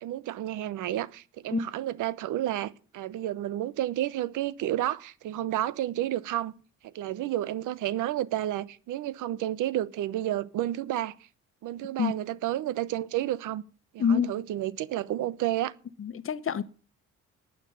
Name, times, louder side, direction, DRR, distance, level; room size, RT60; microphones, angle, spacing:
voice 1, 0.0-6.5 6.8-11.1 11.6-13.6 13.9-15.7, right 13 dB, 85° right, 0.9 m, -31 dB
voice 2, 14.0-14.3 16.0-16.6, left 7 dB, 45° left, 1.1 m, -26 dB
12.0 x 9.2 x 8.9 m
cardioid pair, 90°, 30 cm